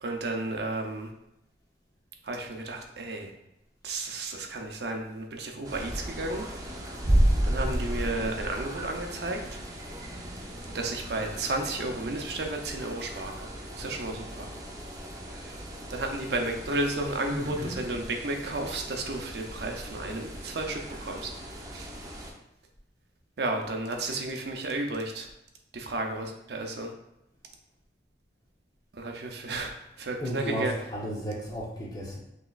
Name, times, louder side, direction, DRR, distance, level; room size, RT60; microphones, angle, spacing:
voice 1, 0.0-1.1 2.2-3.3 3.8-6.4 7.4-9.4 10.7-13.3 13.7-14.4 15.9-21.3 21.7-21.9 23.4-25.3 25.7-26.9 28.9-29.7 30.0-30.7, right 2 dB, 65° right, 3 dB, 0.6 m, -32 dB
sound 1, 5.6-22.3, right 1 dB, 20° right, 0.5 m, -33 dB
voice 2, 17.3-17.8 30.2-32.2, equal, 20° left, -2 dB, 0.8 m, -34 dB
5.5 x 3.0 x 2.4 m, 0.84 s
head